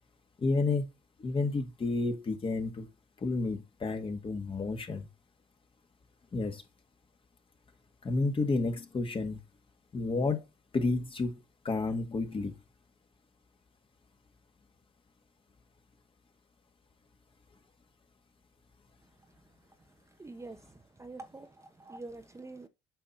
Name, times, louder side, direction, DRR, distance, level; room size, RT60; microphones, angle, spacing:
voice 1, 0.4-0.9 1.2-2.9 3.2-5.1 6.3-6.6 8.0-9.4 9.9-10.4 10.7-12.5, left 3 dB, 35° left, 1.9 m, -31 dB
voice 2, 20.2-20.6 21.0-22.7, right 2 dB, 20° right, 0.9 m, -45 dB
8.9 x 5.7 x 4.3 m
supercardioid pair, 80°, 15 cm